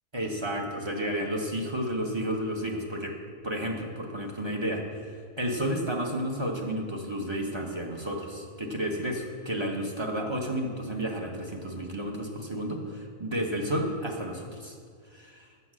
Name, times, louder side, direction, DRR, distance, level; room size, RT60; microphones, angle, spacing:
voice 1, 0.1-3.1 3.4-4.8 5.4-14.8 15.1-15.5, equal, 25° right, 1 dB, 0.8 m, -31 dB
8.0 x 7.4 x 6.1 m, 2.1 s
omnidirectional pair, 1.5 m